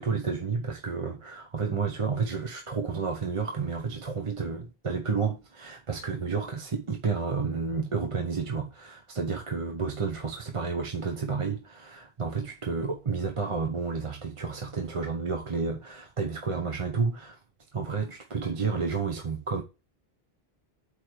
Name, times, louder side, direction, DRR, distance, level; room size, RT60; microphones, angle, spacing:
voice 1, 0.0-17.4 17.7-19.6, right 5 dB, 35° right, 0.8 m, -31 dB
8.4 x 3.1 x 6.3 m
omnidirectional pair, 1.1 m